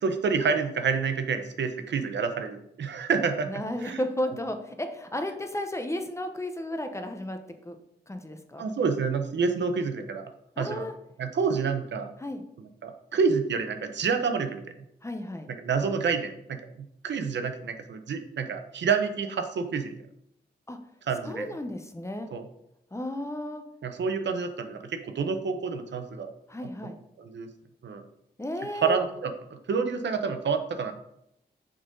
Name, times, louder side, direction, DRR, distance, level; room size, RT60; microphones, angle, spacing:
voice 1, 0.0-3.5 3.8-4.0 8.6-10.3 10.6-10.9 11.2-12.1 12.8-14.6 15.6-16.6 17.0-19.9 21.1-21.5 22.3-22.4 23.8-26.3 27.2-27.5 27.8-28.0 28.8-30.9, right 5 dB, 85° right, 7 dB, 0.7 m, -28 dB
voice 2, 3.5-7.8 8.1-8.7 10.6-10.9 12.2-12.4 15.0-15.5 20.7-20.8 21.2-22.3 22.9-23.6 26.5-26.9 28.4-29.0, left 1 dB, 15° left, 6 dB, 0.7 m, -33 dB
6.2 x 3.9 x 5.2 m, 0.77 s
wide cardioid pair, 105°, 18 cm